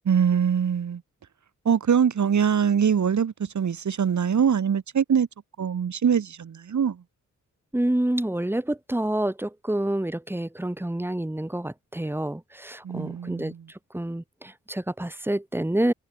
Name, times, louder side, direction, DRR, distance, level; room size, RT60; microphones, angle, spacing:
voice 1, 0.0-1.0 1.6-5.3 5.6-7.0 12.8-13.7, right 7 dB, 65° right, 6.6 m, -23 dB
voice 2, 7.7-13.5 13.9-15.9, right 1 dB, 5° right, 4.1 m, -28 dB
wide cardioid pair, 175°, 31 cm